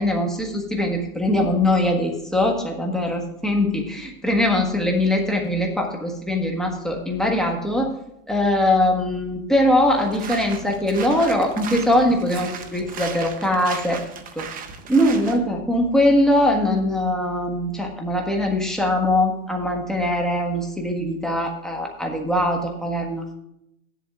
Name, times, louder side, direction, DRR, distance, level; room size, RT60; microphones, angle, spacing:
voice 1, 0.0-7.9 8.3-14.0 14.3-14.5 14.9-23.3, left 1 dB, ahead, 0 dB, 1.4 m, -21 dB
sound 1, 9.9-15.4, right 6 dB, 20° right, 0.8 m, -36 dB
15.5 x 11.0 x 2.4 m, 0.80 s
hypercardioid pair, 135°, 43 cm